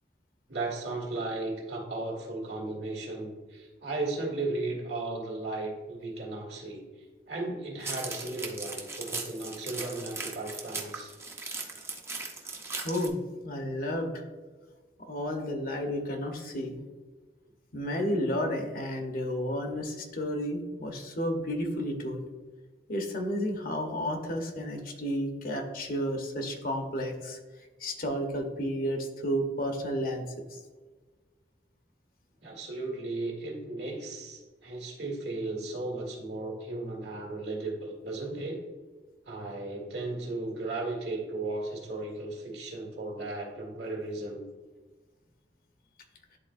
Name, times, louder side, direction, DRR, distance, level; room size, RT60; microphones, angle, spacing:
voice 1, 0.5-6.8 7.3-11.1 32.4-38.6 39.2-44.4, right 2 dB, 65° right, -1 dB, 1.8 m, -35 dB
sound 1, 7.8-13.1, right 3 dB, 15° right, 0.6 m, -38 dB
voice 2, 12.8-13.2 13.4-14.2 15.0-16.8 17.7-22.2 22.9-27.4 27.8-30.2 30.5-30.6, equal, 50° left, 3 dB, 0.9 m, -32 dB
10.5 x 3.9 x 2.5 m, 1.3 s
head